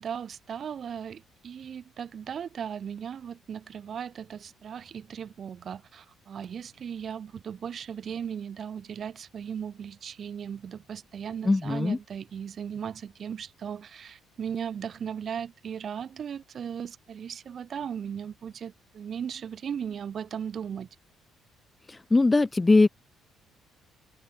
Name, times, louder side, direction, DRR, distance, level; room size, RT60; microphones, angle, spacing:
voice 1, 0.0-20.9, right 8 dB, 50° right, 1.2 m, -37 dB
voice 2, 11.4-12.0 21.9-22.9, left 3 dB, 20° left, 0.4 m, -21 dB
cardioid pair, 100°, 0 cm